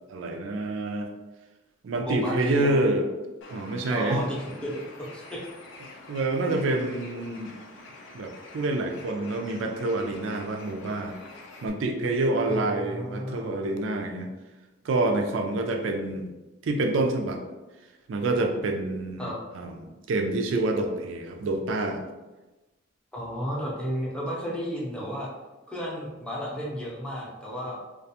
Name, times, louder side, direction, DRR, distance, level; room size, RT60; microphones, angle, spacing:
voice 1, 0.1-1.1 1.8-3.1 3.5-4.2 6.1-7.5 8.1-11.1 11.6-14.3 14.8-16.3 16.6-17.4 18.1-19.3 19.5-19.8 20.1-22.0, right 2 dB, 85° right, 4 dB, 0.4 m, -27 dB
voice 2, 2.0-2.8 3.9-4.8 5.1-5.4 12.5-13.7 19.2-19.4 23.1-25.3 25.7-27.8, equal, 5° left, -5 dB, 0.5 m, -33 dB
Bird, 3.4-11.7, left 2 dB, 70° left, 0.4 m, -46 dB
2.4 x 2.2 x 2.7 m, 1.1 s
head